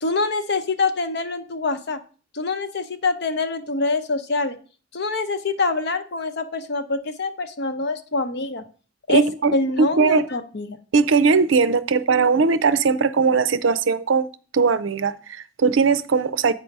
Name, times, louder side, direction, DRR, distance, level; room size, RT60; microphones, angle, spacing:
voice 1, 0.0-2.0 2.3-4.6 4.9-8.6 9.1-9.2 9.5-10.8, left 3 dB, 55° left, 0.8 m, -25 dB
voice 2, 9.1-10.2 10.9-14.3 14.5-16.5, right 5 dB, 75° right, 0.5 m, -19 dB
8.3 x 4.6 x 5.3 m
head